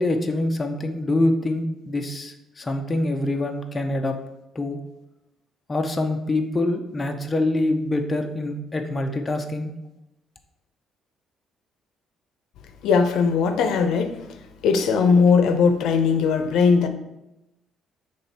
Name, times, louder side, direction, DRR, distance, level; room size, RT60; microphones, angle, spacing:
voice 1, 0.0-4.2 4.5-4.8 5.7-9.7, left 2 dB, 20° left, 4 dB, 0.5 m, -25 dB
voice 2, 12.8-14.3 14.6-16.9, left 5 dB, 75° left, 7 dB, 0.6 m, -19 dB
7.1 x 3.3 x 4.2 m, 0.93 s
cardioid pair, 150°, 0 cm